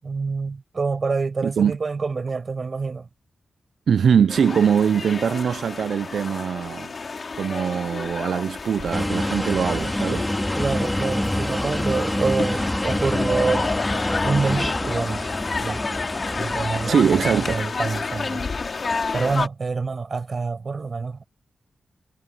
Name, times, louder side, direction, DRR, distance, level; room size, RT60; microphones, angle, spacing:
voice 1, 0.0-3.1 10.6-13.7 14.2-15.3 15.6-15.8 16.3-18.5 19.1-21.3, right 4 dB, 55° right, 5.7 m, -26 dB
voice 2, 1.4-1.8 3.9-6.9 7.4-10.3 16.9-17.6, right 7 dB, 80° right, 0.4 m, -22 dB
sound 1, 4.3-19.5, left 4 dB, 55° left, 2.5 m, -30 dB
sound 2, 8.9-17.6, left 1 dB, 10° left, 2.2 m, -27 dB
cardioid pair, 50°, 0 cm